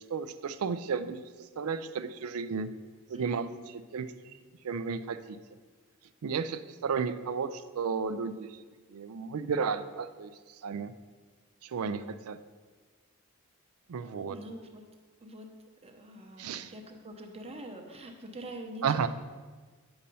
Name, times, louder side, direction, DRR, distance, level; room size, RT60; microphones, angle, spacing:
voice 1, 0.1-1.2 1.6-2.7 3.1-3.5 3.9-4.1 4.6-5.4 6.2-8.6 8.9-10.3 10.6-10.9 11.6-12.4 13.9-14.4 16.4-16.7 18.8-19.1, right 5 dB, 75° right, 12 dB, 0.4 m, -33 dB
voice 2, 3.1-3.5 14.3-14.8 15.2-15.5 15.8-19.1, right 1 dB, 25° right, 3 dB, 0.8 m, -44 dB
8.7 x 4.2 x 5.4 m, 1.4 s
head